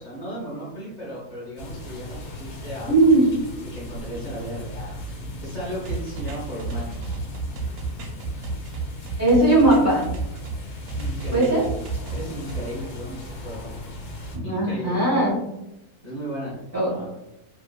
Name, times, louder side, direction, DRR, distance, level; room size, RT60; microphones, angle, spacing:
voice 1, 0.0-3.1 3.7-4.9 5.4-7.2 10.9-11.7 12.1-13.8 14.4-15.0 16.0-16.6 16.9-17.1, equal, 45° left, -7 dB, 0.6 m, -35 dB
sound 1, 1.6-14.4, left 1 dB, 65° left, 1.0 m, -37 dB
voice 2, 2.9-3.3 9.2-10.0 11.3-11.6 14.3-15.4 16.7-16.9, right 2 dB, 15° right, -7 dB, 0.5 m, -18 dB
sound 2, 5.8-10.6 10.9-12.6, right 4 dB, 90° right, 1.1 m, -31 dB
2.7 x 2.3 x 2.2 m, 0.91 s
omnidirectional pair, 1.6 m